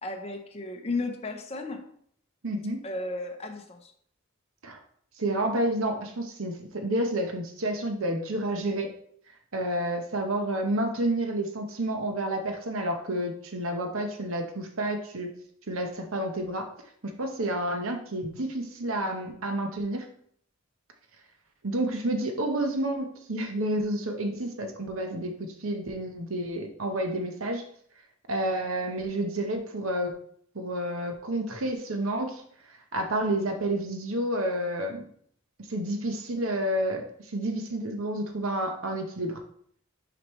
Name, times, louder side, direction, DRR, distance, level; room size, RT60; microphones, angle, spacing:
voice 1, 0.0-1.9 2.8-3.9, left 2 dB, 30° left, 4 dB, 0.6 m, -34 dB
voice 2, 2.4-2.8 4.6-4.8 5.2-8.9 9.5-15.3 15.7-16.7 17.0-20.1 21.6-27.6 28.3-30.2 30.5-32.4 32.9-35.0 35.7-39.4, right 1 dB, 70° right, 5 dB, 0.9 m, -30 dB
6.4 x 5.1 x 3.1 m, 0.63 s
head